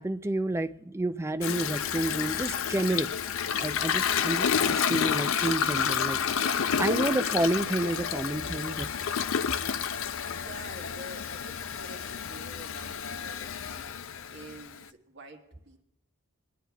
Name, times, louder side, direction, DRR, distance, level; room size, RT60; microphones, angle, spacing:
voice 1, 0.0-3.1 3.6-6.2 6.8-8.9 10.2-10.4, right 1 dB, 15° right, 11 dB, 0.4 m, -30 dB
Toilet flush, 1.4-14.8, left 7 dB, 70° left, 0.5 m, -30 dB
Gurgling, 5.2-9.8, right 2 dB, 90° right, 1.4 m, -56 dB
voice 2, 5.9-6.8 10.0-15.8, right 1 dB, 55° right, 2 dB, 1.4 m, -49 dB
28.0 x 10.5 x 2.3 m, 0.86 s
head